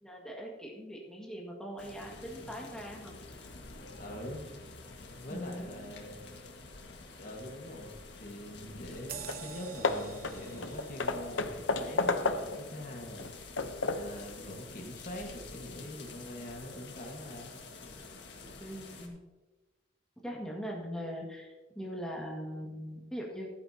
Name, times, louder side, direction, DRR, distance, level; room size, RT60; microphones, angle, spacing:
voice 1, 0.0-3.1 5.3-5.7 18.6-19.2 20.2-23.5, equal, 5° left, -2 dB, 1.9 m, -41 dB
sound 1, 1.8-19.1, left 3 dB, 60° left, 1.8 m, -48 dB
voice 2, 4.0-4.5 5.0-6.2 7.2-13.5 13.9-17.5, left 1 dB, 45° left, 1 dB, 1.6 m, -44 dB
Hammer / Wood, 8.9-9.0 9.3-9.5 9.8-12.7 13.2-14.2, left 3 dB, 85° left, 0.8 m, -32 dB
sound 2, 9.1-14.1 14.5-14.7, right 7 dB, 50° right, 0.9 m, -49 dB
14.5 x 11.5 x 2.9 m, 1.2 s
head